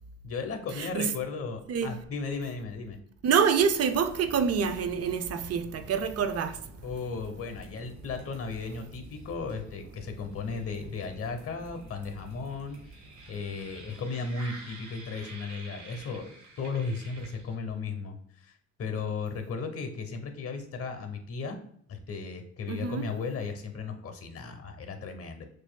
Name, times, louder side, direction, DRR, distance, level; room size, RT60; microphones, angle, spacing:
voice 1, 0.2-3.0 6.8-13.0 13.3-16.3 16.6-21.6 21.9-25.5, left 4 dB, 50° left, 0.9 m, -35 dB
voice 2, 0.8-1.1 1.7-1.9 3.2-6.6 22.7-23.1, right 6 dB, 55° right, 0.5 m, -26 dB
sound 1, 3.9-17.8, right 2 dB, 80° right, 1.5 m, -48 dB
6.2 x 2.6 x 2.2 m
cardioid pair, 90°, 30 cm